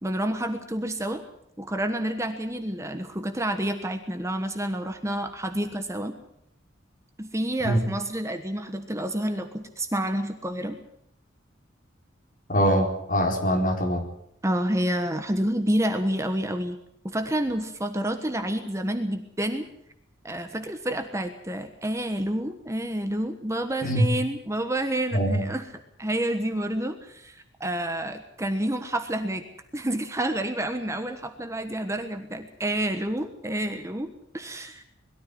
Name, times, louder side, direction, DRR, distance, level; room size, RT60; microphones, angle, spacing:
voice 1, 0.0-1.2 1.6-6.1 7.2-10.8 14.4-16.8 17.0-19.7 20.2-25.7 26.0-29.5 29.7-34.8, right 1 dB, 15° right, 7 dB, 1.3 m, -29 dB
voice 2, 12.5-14.0 23.8-24.1 25.1-25.4, equal, 45° left, 2 dB, 4.4 m, -23 dB
21.5 x 13.5 x 10.0 m, 0.77 s
head